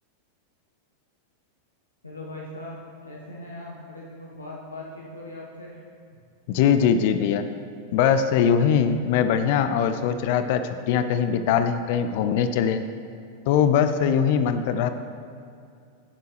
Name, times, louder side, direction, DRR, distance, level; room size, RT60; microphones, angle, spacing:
voice 1, 2.0-5.8 6.1-6.2, left 1 dB, 80° left, -4 dB, 1.1 m, -40 dB
voice 2, 6.5-7.4 7.9-10.6 10.9-12.8 13.5-14.9, left 8 dB, 50° left, 10 dB, 0.5 m, -21 dB
15.5 x 6.8 x 3.2 m, 2.4 s
figure-of-eight pair, 90°, 0 cm